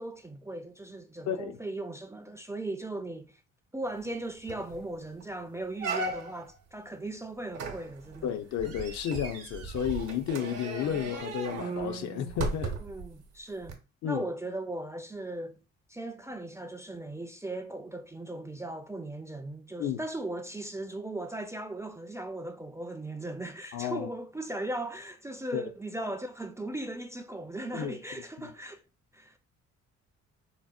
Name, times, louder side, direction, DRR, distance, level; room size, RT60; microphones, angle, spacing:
voice 1, 0.0-3.3 3.7-8.3 12.8-15.6 15.9-28.8 29.1-29.4, right 1 dB, 10° right, 0.3 m, -38 dB
voice 2, 1.3-1.6 8.2-12.8 14.0-14.2 19.8-20.0 23.7-24.1 25.5-25.6 27.7-28.0 28.4-28.5, left 9 dB, 65° left, 0.5 m, -32 dB
sound 1, 4.0-4.1 4.5-4.8 5.2-5.3 5.8-6.5 7.5-13.0 13.6-13.7, right 4 dB, 85° right, 0.8 m, -36 dB
4.0 x 2.0 x 2.3 m
supercardioid pair, 70°, 30 cm